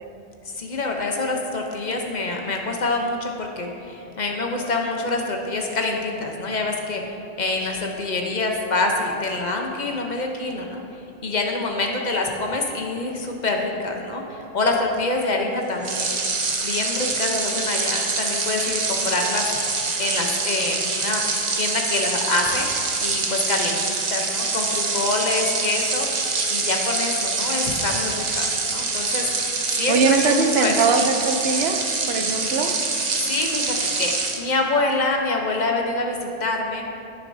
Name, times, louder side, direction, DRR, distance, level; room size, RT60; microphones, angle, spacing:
voice 1, 0.4-7.0 7.4-10.8 11.2-16.1 16.6-19.5 20.0-21.2 21.6-22.7 23.0-26.1 26.5-30.8 33.2-34.1 34.4-36.8, left 2 dB, 45° left, 1 dB, 0.9 m, -26 dB
sound 1, 15.8-34.4, right 3 dB, 45° right, 0.8 m, -25 dB
voice 2, 29.9-31.8 32.1-32.7, right 4 dB, 75° right, 5 dB, 0.9 m, -21 dB
10.0 x 9.6 x 2.7 m, 2.8 s
omnidirectional pair, 1.1 m